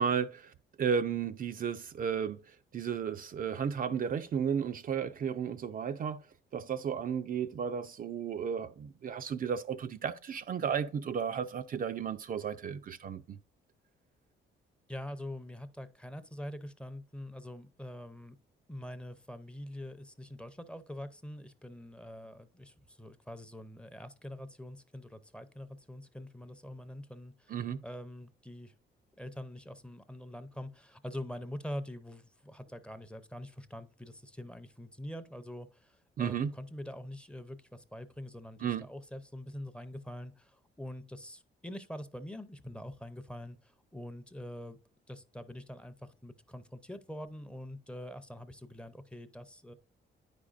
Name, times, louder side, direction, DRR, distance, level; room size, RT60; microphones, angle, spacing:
voice 1, 0.0-2.4 2.7-6.2 6.5-13.4 27.5-27.8 36.2-36.5 38.6-38.8, right 7 dB, 45° right, 0.4 m, -33 dB
voice 2, 14.9-18.3 18.7-28.7 29.2-44.8 45.1-49.7, left 1 dB, 5° left, 0.6 m, -44 dB
9.4 x 5.1 x 2.4 m
cardioid pair, 90°, 20 cm